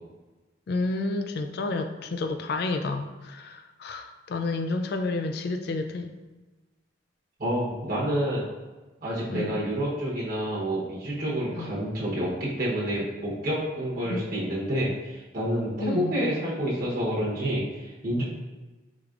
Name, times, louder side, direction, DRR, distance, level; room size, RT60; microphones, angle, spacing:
voice 1, 0.7-6.1 9.3-9.6 11.5-11.7 14.0-14.2 15.8-16.2, left 3 dB, 55° left, 6 dB, 0.3 m, -30 dB
voice 2, 7.4-8.4 9.0-18.2, equal, 50° right, -6 dB, 0.9 m, -28 dB
4.9 x 3.4 x 2.4 m, 1.2 s
head